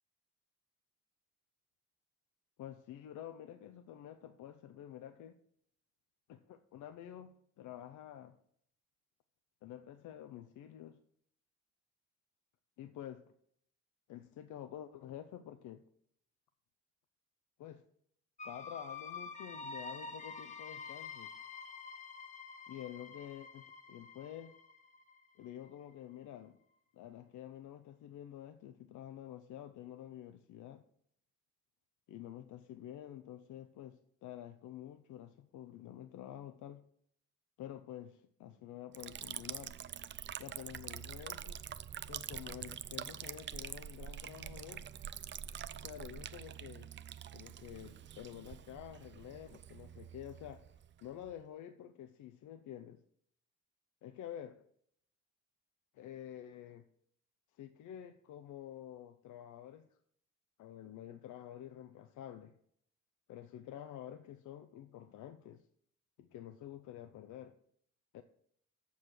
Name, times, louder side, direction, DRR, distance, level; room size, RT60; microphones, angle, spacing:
voice 1, 2.6-5.4 6.3-8.4 9.6-11.0 12.8-13.2 14.1-15.8 17.6-17.8 18.4-21.3 22.7-24.5 25.4-26.6 26.9-30.8 32.1-36.8 37.6-39.8 40.4-41.6 42.1-44.9 45.8-46.9 47.3-50.7 51.0-53.0 54.0-54.6 55.9-56.8 57.5-59.9 60.6-62.6 63.3-65.7 66.2-67.5 68.1-68.2, left 11 dB, 75° left, 9 dB, 0.6 m, -49 dB
sound 1, 18.4-26.0, left 4 dB, 25° left, 1.3 m, -48 dB
Liquid, 38.9-51.4, right 9 dB, 40° right, 0.4 m, -46 dB
7.2 x 6.3 x 7.4 m, 0.68 s
cardioid pair, 90°, 30 cm